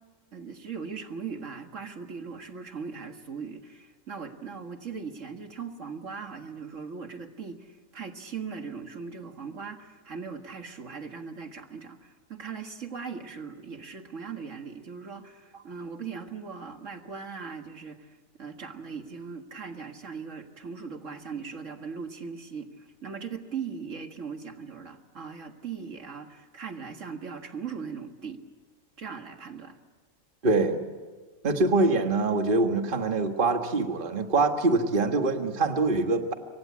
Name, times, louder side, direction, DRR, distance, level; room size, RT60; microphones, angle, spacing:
voice 1, 0.3-28.4 29.0-29.8, right 5 dB, 65° right, 5 dB, 2.0 m, -39 dB
voice 2, 30.4-30.8 31.4-36.3, right 3 dB, 40° right, 5 dB, 1.7 m, -24 dB
27.0 x 24.5 x 8.5 m, 1.4 s
omnidirectional pair, 1.4 m